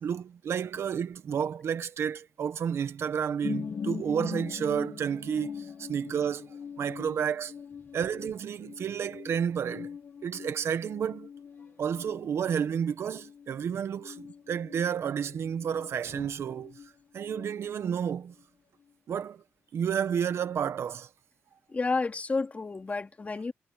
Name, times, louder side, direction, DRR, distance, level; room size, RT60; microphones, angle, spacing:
voice 1, 0.0-6.5 6.8-7.5 7.9-9.9 10.2-11.3 11.8-16.7 17.1-18.3 19.1-19.4 19.7-21.1, right 8 dB, 75° right, 1.3 m, -31 dB
sound 1, 3.4-16.9 17.2-18.0 18.4-18.5, left 6 dB, 60° left, 1.4 m, -42 dB
voice 2, 21.7-23.5, left 3 dB, 35° left, 3.0 m, -30 dB
cardioid pair, 95°, 4 cm